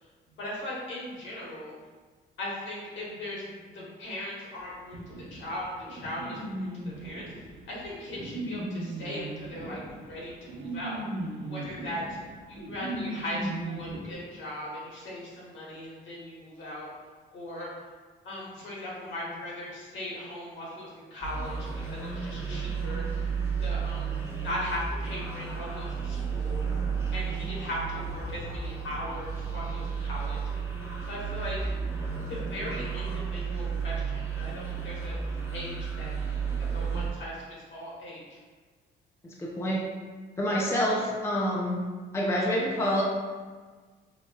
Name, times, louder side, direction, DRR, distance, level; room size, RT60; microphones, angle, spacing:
voice 1, 0.4-1.7 2.4-5.0 5.3-7.3 7.7-11.0 11.4-12.2 12.5-16.9 17.3-17.7 18.2-23.0 23.6-26.7 27.1-30.4 31.0-31.7 32.3-36.1 36.7-37.4 37.7-38.4, left 1 dB, 70° left, -5 dB, 1.1 m, -38 dB
sound 1, 4.9-14.0, right 1 dB, 65° right, 0.8 m, -37 dB
sound 2, 21.2-37.1, right 6 dB, 10° right, 0.9 m, -32 dB
voice 2, 39.2-39.8 40.4-41.8 42.1-43.0, equal, 15° left, -3 dB, 0.5 m, -27 dB
4.1 x 2.2 x 2.3 m, 1.4 s
cardioid pair, 90°, 20 cm